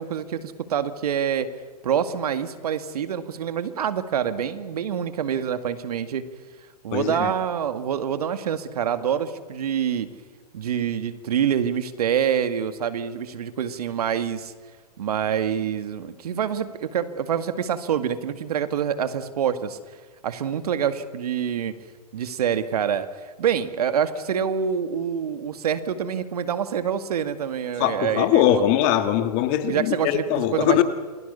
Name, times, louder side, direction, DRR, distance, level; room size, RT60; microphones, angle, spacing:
voice 1, 0.0-1.5 1.8-6.2 6.8-10.1 10.5-14.5 15.0-19.8 20.2-21.8 22.1-23.1 23.4-28.6 29.6-30.8, right 8 dB, 70° right, 10 dB, 2.1 m, -26 dB
voice 2, 6.9-7.3 27.8-30.8, left 11 dB, 40° left, 9 dB, 2.1 m, -21 dB
28.0 x 21.5 x 7.0 m, 1.5 s
hypercardioid pair, 125°, 20 cm